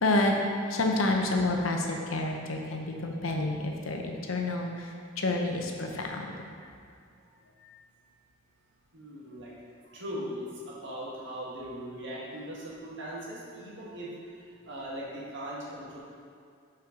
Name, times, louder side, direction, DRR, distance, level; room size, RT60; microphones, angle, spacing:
voice 1, 0.0-0.3 0.7-4.9 5.2-6.3, left 2 dB, 90° left, 2 dB, 0.8 m, -28 dB
voice 2, 8.9-9.5 9.8-16.0, equal, 60° right, -6 dB, 1.6 m, -39 dB
5.9 x 4.6 x 5.1 m, 2.4 s
head